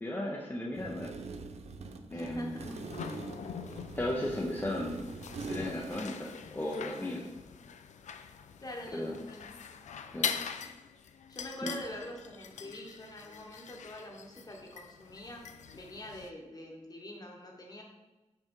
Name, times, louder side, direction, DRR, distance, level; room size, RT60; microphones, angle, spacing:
voice 1, 0.0-1.1 2.1-2.8 3.9-5.0 5.5-7.2 8.9-9.2 10.1-10.4 11.6-11.8, left 1 dB, 15° left, -3 dB, 0.6 m, -35 dB
sound 1, 0.7-6.0, right 4 dB, 65° right, 0.5 m, -43 dB
voice 2, 2.1-2.7 8.6-9.5 11.3-15.4 15.7-17.8, left 1 dB, 30° left, 0 dB, 1.1 m, -45 dB
sound 2, 2.4-16.3, left 7 dB, 85° left, 0.4 m, -43 dB
5.3 x 5.0 x 3.6 m, 1.1 s
wide cardioid pair, 135°, 12 cm